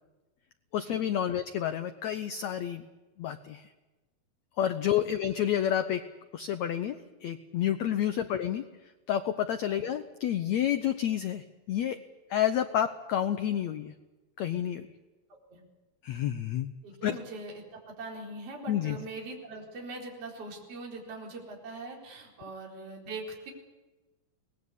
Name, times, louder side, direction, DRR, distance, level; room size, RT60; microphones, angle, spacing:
voice 1, 0.7-2.8 3.2-3.6 4.6-6.0 6.3-8.6 9.1-12.0 12.3-13.9 14.4-14.9 16.0-16.7 17.0-17.2 18.7-19.0, left 10 dB, 80° left, 10 dB, 1.6 m, -29 dB
voice 2, 16.8-23.5, right 2 dB, 40° right, -2 dB, 5.1 m, -42 dB
23.5 x 19.5 x 8.3 m, 1.1 s
omnidirectional pair, 4.3 m